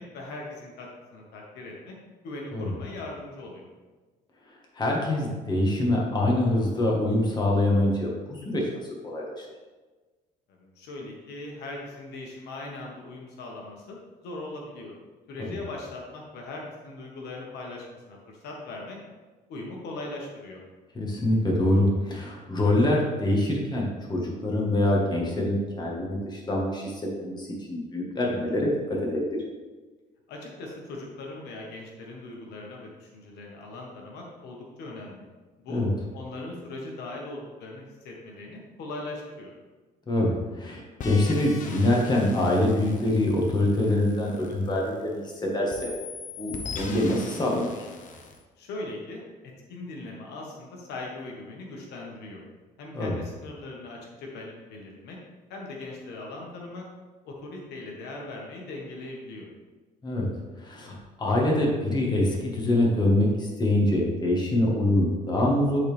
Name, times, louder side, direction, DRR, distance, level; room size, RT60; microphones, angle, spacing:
voice 1, 0.0-1.9 2.2-3.7 10.5-15.0 15.3-19.0 19.5-20.6 30.3-35.3 35.6-35.8 36.1-39.5 48.6-52.4 52.8-55.2 55.5-56.8 57.2-59.5, left 2 dB, 80° left, -1 dB, 1.5 m, -40 dB
voice 2, 4.7-8.7 9.0-9.5 21.0-29.4 35.7-35.9 40.1-45.9 46.4-47.8 52.9-53.2 60.0-60.3 60.6-65.8, left 1 dB, 25° left, -2 dB, 1.7 m, -25 dB
sound 1, 41.0-45.3 45.7-48.4, left 4 dB, 50° left, 1.0 m, -41 dB
10.0 x 4.2 x 3.5 m, 1.3 s
cardioid pair, 110°, 17 cm